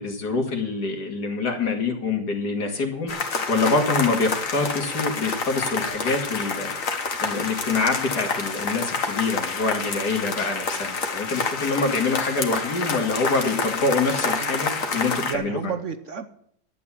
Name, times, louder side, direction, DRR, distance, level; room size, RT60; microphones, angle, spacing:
voice 1, 0.0-6.7 7.2-15.7, left 3 dB, 70° left, 3 dB, 2.8 m, -25 dB
sound 1, 3.1-15.3, left 4 dB, 50° left, 1.9 m, -28 dB
voice 2, 14.2-14.7 15.2-16.3, right 7 dB, 55° right, 9 dB, 1.0 m, -32 dB
12.0 x 8.6 x 7.3 m, 0.68 s
omnidirectional pair, 1.8 m